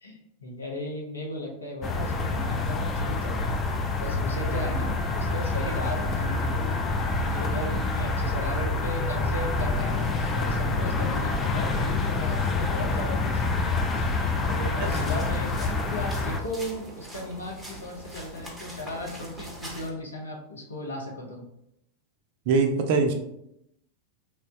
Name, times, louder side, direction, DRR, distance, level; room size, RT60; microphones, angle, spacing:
voice 1, 0.0-3.6 4.0-6.9 7.2-14.1 14.5-21.5, left 1 dB, 75° left, 0 dB, 0.6 m, -36 dB
sound 1, 1.8-16.4, left 3 dB, 25° left, 0.3 m, -27 dB
sound 2, 14.8-19.9, right 2 dB, 5° right, 0.6 m, -42 dB
voice 2, 22.5-23.1, right 4 dB, 50° right, 5 dB, 0.4 m, -23 dB
2.9 x 2.1 x 2.6 m, 0.79 s
figure-of-eight pair, 90°, 0 cm